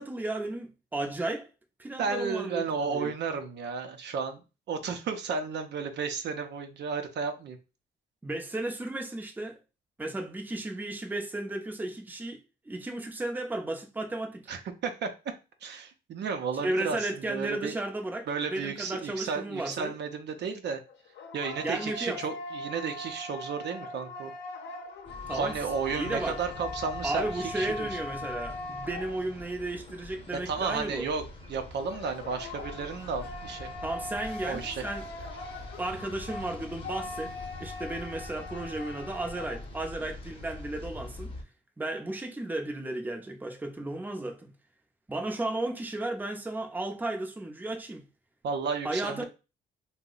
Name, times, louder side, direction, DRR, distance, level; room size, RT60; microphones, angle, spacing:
voice 1, 0.0-1.5 1.8-3.1 8.2-9.6 10.0-14.4 16.6-20.0 21.6-22.2 25.3-25.6 25.9-26.4 27.0-31.1 33.8-35.4 35.8-37.3 37.6-41.3 41.8-44.5 45.1-48.0 48.8-49.2, right 2 dB, 10° right, 0.5 m, -34 dB
voice 2, 2.0-4.4 4.7-7.6 14.5-15.1 15.6-17.8 18.3-20.8 21.3-24.3 25.3-27.9 30.3-31.2 31.5-33.7 34.5-34.8 48.4-49.2, right 5 dB, 60° right, 0.5 m, -33 dB
sound 1, 20.9-29.6 31.9-39.7, left 2 dB, 65° left, 0.7 m, -41 dB
sound 2, 25.1-41.4, left 2 dB, 25° left, 0.8 m, -45 dB
2.7 x 2.1 x 3.8 m
cardioid pair, 90°, 20 cm